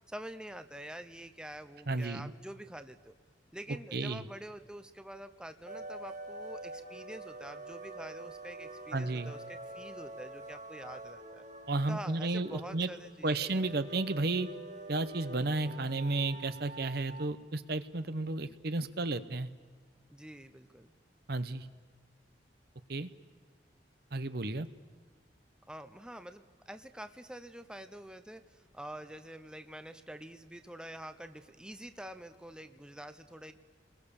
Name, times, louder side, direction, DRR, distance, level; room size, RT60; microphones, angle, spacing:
voice 1, 0.1-3.1 3.5-11.4 11.9-13.5 20.1-20.9 25.7-33.5, right 1 dB, 5° right, 9 dB, 0.8 m, -46 dB
voice 2, 1.9-2.3 3.9-4.2 8.9-9.3 11.7-12.9 13.2-14.5 14.9-19.5 21.3-21.7 22.9-23.1 24.1-24.7, right 2 dB, 60° right, 12 dB, 1.0 m, -33 dB
sound 1, 5.7-17.3, right 2 dB, 45° right, 2.0 m, -46 dB
29.5 x 21.5 x 7.1 m, 1.5 s
head